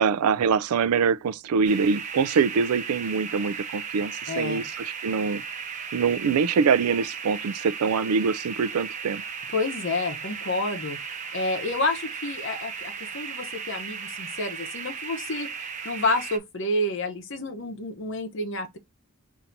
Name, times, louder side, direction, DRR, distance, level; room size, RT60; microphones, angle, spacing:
voice 1, 0.0-5.4 5.9-9.2, right 5 dB, 90° right, 0.4 m, -24 dB
sound 1, 1.6-16.4, right 6 dB, 35° right, 0.6 m, -36 dB
voice 2, 4.3-4.6 9.5-15.5 15.8-18.8, left 2 dB, 55° left, 0.8 m, -29 dB
5.7 x 2.7 x 2.6 m
head